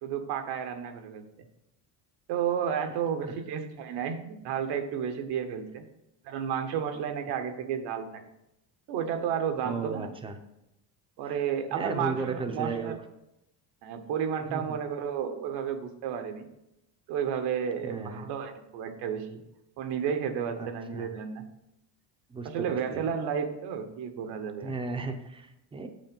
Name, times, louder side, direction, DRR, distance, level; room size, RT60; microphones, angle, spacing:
voice 1, 0.0-1.5 2.3-5.8 6.2-8.2 8.9-10.1 11.2-13.0 13.8-16.5 17.1-19.4 19.8-21.4 22.4-24.7, right 8 dB, 80° right, 7 dB, 1.1 m, -32 dB
voice 2, 9.6-10.4 11.2-11.4 11.7-12.9 14.5-14.6 17.8-18.3 20.6-21.2 22.3-23.1 24.6-25.9, right 4 dB, 15° right, 6 dB, 0.5 m, -35 dB
7.7 x 5.4 x 5.3 m, 0.87 s
cardioid pair, 170°, 40 cm